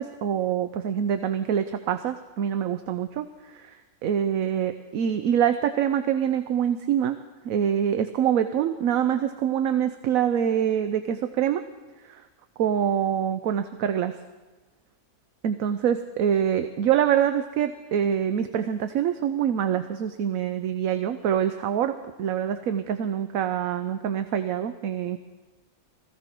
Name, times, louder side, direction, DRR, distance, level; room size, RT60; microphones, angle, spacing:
voice 1, 0.0-3.8 4.0-7.2 7.4-11.6 12.0-12.2 12.6-14.2 15.4-25.2, right 9 dB, 70° right, 9 dB, 1.1 m, -25 dB
20.5 x 15.5 x 4.5 m, 1.2 s
omnidirectional pair, 1.6 m